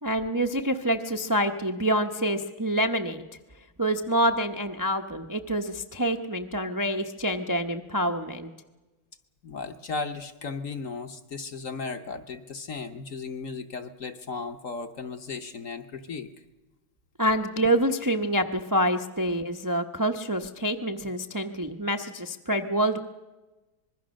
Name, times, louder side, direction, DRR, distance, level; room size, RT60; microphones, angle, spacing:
voice 1, 0.0-3.3 3.8-8.5 17.2-23.0, right 1 dB, 25° right, 4 dB, 0.4 m, -27 dB
voice 2, 9.4-16.3, left 4 dB, 50° left, 7 dB, 1.1 m, -36 dB
25.0 x 21.0 x 6.4 m, 1.2 s
omnidirectional pair, 2.2 m